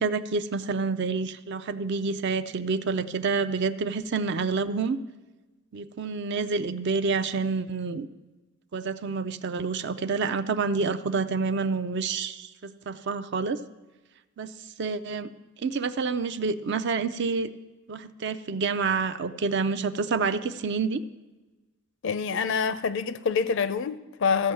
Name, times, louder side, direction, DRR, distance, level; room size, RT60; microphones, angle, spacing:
voice 1, 0.0-5.0 5.7-8.1 8.7-13.6 14.4-14.5 14.8-15.3 15.6-17.5 17.9-21.0, right 4 dB, 50° right, 0.4 m, -28 dB
voice 2, 22.0-24.5, left 5 dB, 55° left, 0.4 m, -26 dB
14.5 x 5.4 x 7.6 m
head